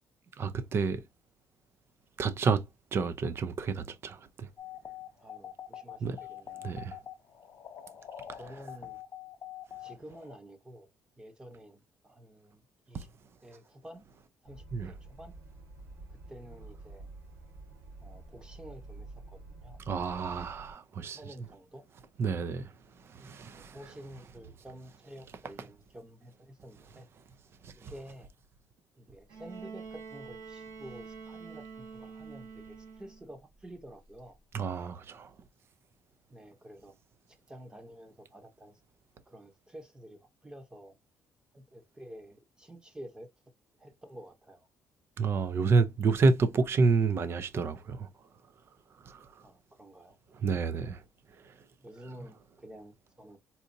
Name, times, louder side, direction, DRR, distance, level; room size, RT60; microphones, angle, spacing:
voice 1, 0.4-1.0 2.2-2.6 2.9-4.5 6.0-6.2 6.6-7.0 8.3-8.4 12.9-13.1 14.7-14.9 19.9-21.2 22.2-22.7 23.0-23.8 27.6-27.9 34.5-35.3 45.2-48.1 49.0-49.3 50.3-51.0 51.4-51.5, right 4 dB, 45° right, 0.5 m, -29 dB
sound 1, 4.6-10.4, left 11 dB, 50° left, 0.6 m, -45 dB
voice 2, 5.2-6.7 8.3-9.0 9.8-10.9 11.2-13.1 13.4-14.0 14.4-15.3 16.1-17.1 18.0-20.2 21.0-21.8 23.5-27.1 27.8-28.3 29.0-34.4 36.3-36.9 37.5-38.8 39.3-40.9 41.5-43.3 43.8-44.7 49.4-50.2 51.8-53.4, equal, 15° right, 0.9 m, -50 dB
sound 2, 14.4-20.7, right 2 dB, 65° right, 2.5 m, -49 dB
Bowed string instrument, 29.3-33.3 34.6-34.7, right 5 dB, 90° right, 2.2 m, -46 dB
4.1 x 2.5 x 2.6 m
cardioid pair, 130°, 6 cm